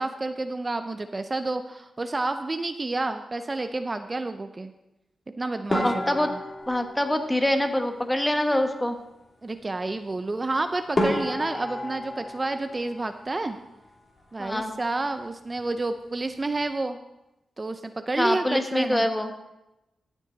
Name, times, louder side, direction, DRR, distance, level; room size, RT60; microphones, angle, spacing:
voice 1, 0.0-4.7 5.4-6.3 9.4-13.6 14.3-17.0 17.6-19.1, right 2 dB, 35° right, 8 dB, 0.6 m, -29 dB
sound 1, 5.7-8.2 10.4-10.5 10.9-13.7 14.0-14.8 15.1-15.3 15.6-15.7 16.3-16.6, left 1 dB, 45° left, 2.9 m, -32 dB
voice 2, 5.7-6.3 6.7-9.0 14.4-14.7 18.2-19.3, left 1 dB, 10° left, 6 dB, 1.4 m, -25 dB
13.5 x 7.3 x 4.0 m, 0.95 s
cardioid pair, 55°, 0 cm